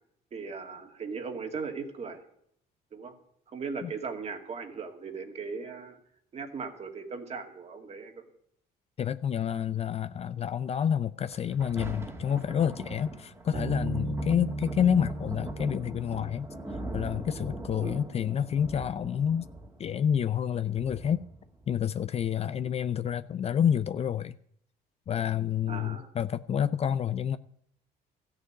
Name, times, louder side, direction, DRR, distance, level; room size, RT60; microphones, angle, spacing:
voice 1, 0.3-2.2 2.9-3.1 3.5-6.0 6.3-8.3 17.8-18.0 25.7-26.1, right 5 dB, 40° right, 2.3 m, -38 dB
voice 2, 9.0-16.5 16.9-19.5 19.8-21.2 21.7-24.3 25.1-27.4, left 8 dB, 40° left, 0.5 m, -28 dB
Thunder, 11.3-22.3 22.9-23.0, right 2 dB, 15° right, 1.9 m, -42 dB
Bass guitar, 13.5-17.1, right 1 dB, 65° right, 3.7 m, -36 dB
14.0 x 6.7 x 9.5 m
cardioid pair, 110°, 17 cm